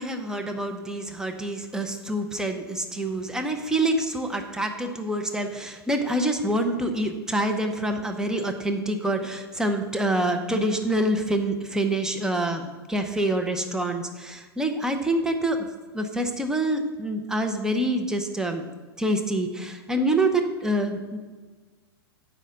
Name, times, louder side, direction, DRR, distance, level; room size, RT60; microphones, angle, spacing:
voice 1, 0.0-15.7 15.9-18.7 19.0-21.2, right 1 dB, 5° right, 4 dB, 0.7 m, -26 dB
7.7 x 5.7 x 6.3 m, 1.4 s
hypercardioid pair, 140°, 13 cm